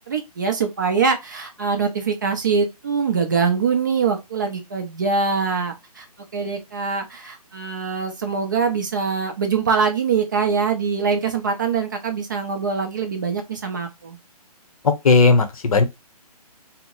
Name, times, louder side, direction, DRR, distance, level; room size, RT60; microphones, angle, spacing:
voice 1, 0.1-6.1 6.3-14.2, right 5 dB, 30° right, 0.5 m, -23 dB
voice 2, 14.8-15.8, left 4 dB, 60° left, 0.7 m, -16 dB
2.8 x 2.0 x 3.6 m
hypercardioid pair, 165°, 20 cm